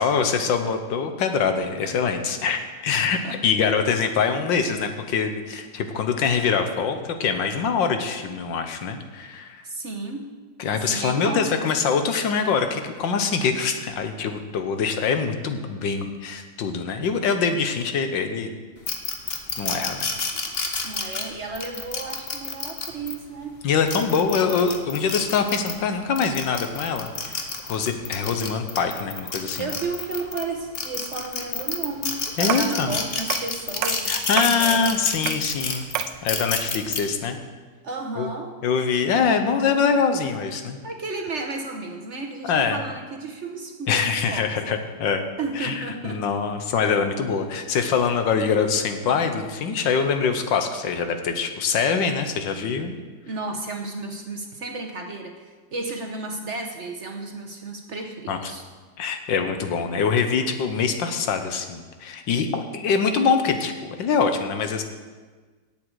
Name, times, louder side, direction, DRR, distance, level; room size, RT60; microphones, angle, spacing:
voice 1, 0.0-9.6 10.6-18.5 19.6-20.1 23.6-29.7 32.4-32.9 34.1-35.9 36.2-37.4 38.2-38.3 38.6-40.8 42.5-42.8 43.9-45.2 45.5-53.0 58.3-58.5 59.0-64.8, left 6 dB, 80° left, 7 dB, 1.7 m, -24 dB
voice 2, 9.6-10.3 10.8-11.6 20.8-23.5 29.6-34.1 34.6-34.8 37.8-38.5 40.8-44.8 45.4-46.3 53.3-58.6, right 3 dB, 45° right, 3 dB, 1.1 m, -33 dB
sound 1, 18.9-23.1 23.7-25.8 26.2-30.4 30.7-37.0, left 4 dB, 40° left, 1.1 m, -29 dB
sound 2, 32.5-32.8 33.3-33.5 33.8-34.6 35.2-35.5 35.9-36.2, right 10 dB, 80° right, 1.3 m, -28 dB
17.5 x 7.8 x 4.8 m, 1.4 s
omnidirectional pair, 2.0 m